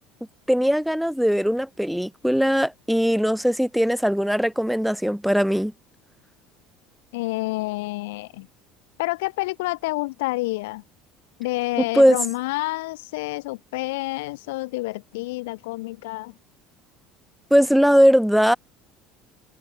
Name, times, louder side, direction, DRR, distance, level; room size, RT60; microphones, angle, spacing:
voice 1, 0.5-5.7 11.9-12.2 17.5-18.6, equal, ahead, 0.6 m, -19 dB
voice 2, 7.1-8.5 9.0-10.8 11.4-16.3, left 21 dB, 90° left, 2.0 m, -28 dB
supercardioid pair, 110°, 0 cm